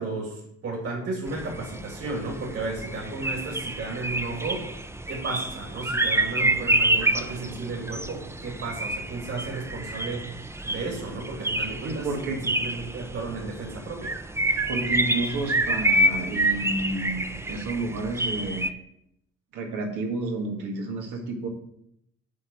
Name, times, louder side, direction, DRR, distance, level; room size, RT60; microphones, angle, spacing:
voice 1, 0.0-4.8 5.1-12.1 12.4-14.2, right 3 dB, 50° right, -2 dB, 3.0 m, -34 dB
sound 1, 1.3-18.7, right 1 dB, 10° right, 0.6 m, -28 dB
voice 2, 11.8-12.4 14.7-17.2 17.5-18.7 19.5-21.5, right 3 dB, 90° right, 2 dB, 1.9 m, -30 dB
8.5 x 4.5 x 7.3 m, 0.76 s
cardioid pair, 90°, 30 cm